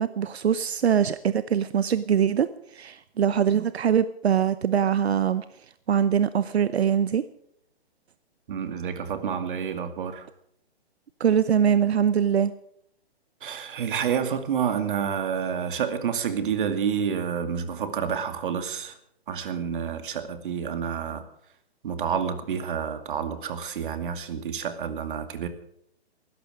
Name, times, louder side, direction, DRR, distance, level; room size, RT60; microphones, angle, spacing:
voice 1, 0.0-2.5 2.7-5.4 5.9-7.2 11.2-12.5, right 8 dB, 75° right, 14 dB, 0.9 m, -23 dB
voice 2, 8.5-10.3 13.4-19.0 19.3-21.2 21.8-25.5, right 7 dB, 50° right, 9 dB, 2.4 m, -29 dB
19.5 x 14.5 x 5.0 m, 0.72 s
hypercardioid pair, 150°, 32 cm